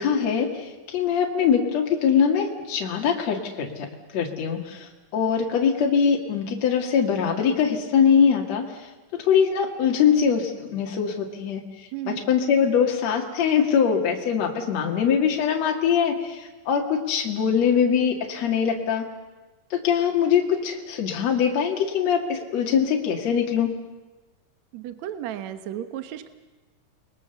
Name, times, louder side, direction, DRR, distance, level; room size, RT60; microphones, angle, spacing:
voice 1, 0.0-3.9 4.1-19.1 19.7-23.7, left 7 dB, 50° left, 1 dB, 3.1 m, -23 dB
voice 2, 11.9-12.3 24.7-26.3, right 11 dB, 60° right, 10 dB, 2.2 m, -34 dB
29.5 x 21.5 x 7.0 m, 1.2 s
omnidirectional pair, 4.1 m